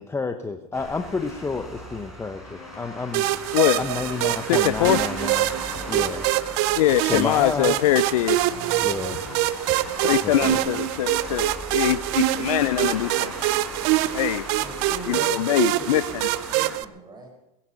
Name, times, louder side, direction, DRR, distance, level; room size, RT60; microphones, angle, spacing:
voice 1, 0.0-3.2 3.8-5.5 5.9-6.2 6.9-7.8 8.8-9.3 10.2-10.8, left 4 dB, 15° left, 6 dB, 1.0 m, -30 dB
sound 1, 0.7-16.8, equal, ahead, 6.2 m, -38 dB
sound 2, 2.4-10.2, left 4 dB, 40° left, 5.0 m, -44 dB
sound 3, 3.1-16.8, right 16 dB, 55° right, 0.7 m, -25 dB
voice 2, 4.5-5.0 6.7-8.4 10.0-13.3 14.1-14.4 15.1-16.2, left 14 dB, 80° left, 15 dB, 0.5 m, -23 dB
voice 3, 14.6-17.3, right 3 dB, 20° right, 3 dB, 4.7 m, -41 dB
21.0 x 10.5 x 5.8 m, 0.88 s
hypercardioid pair, 100°, 18 cm